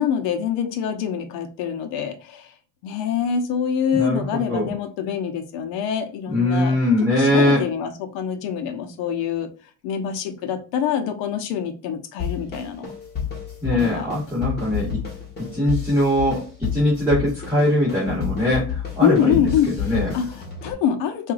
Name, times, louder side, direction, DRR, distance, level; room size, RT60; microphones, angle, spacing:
voice 1, 0.0-2.5 2.8-6.7 7.1-9.5 9.8-12.9 13.7-14.1 19.0-21.3, left 8 dB, 75° left, 0.9 m, -25 dB
voice 2, 3.9-4.2 4.5-4.7 6.3-7.6 13.6-15.0 15.5-19.4 19.8-20.1, left 1 dB, 5° right, 2.0 m, -21 dB
sound 1, 12.2-20.7, left 7 dB, 20° left, 1.5 m, -31 dB
4.7 x 2.6 x 2.5 m
cardioid pair, 140°, 44 cm